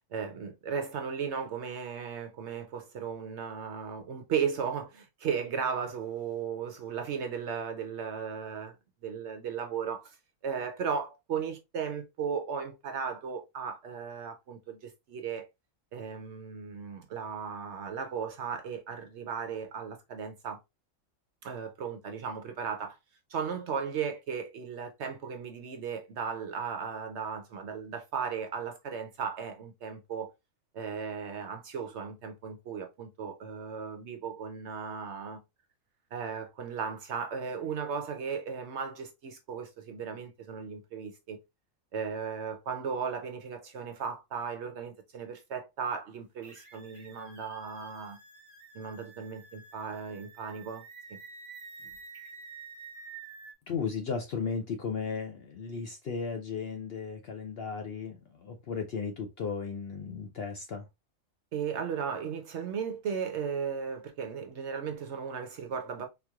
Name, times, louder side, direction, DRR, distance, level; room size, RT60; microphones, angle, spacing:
voice 1, 0.1-8.8 9.0-10.2 10.4-15.5 15.9-20.6 21.4-23.0 23.3-30.3 30.7-35.4 36.1-41.4 41.9-48.2 48.7-50.8 51.1-51.2 61.5-66.1, right 6 dB, 65° right, 0.7 m, -36 dB
sound 1, 46.4-53.5, right 4 dB, 40° right, 1.1 m, -49 dB
voice 2, 53.7-60.9, left 5 dB, 65° left, 0.6 m, -35 dB
3.7 x 3.0 x 2.3 m
omnidirectional pair, 1.5 m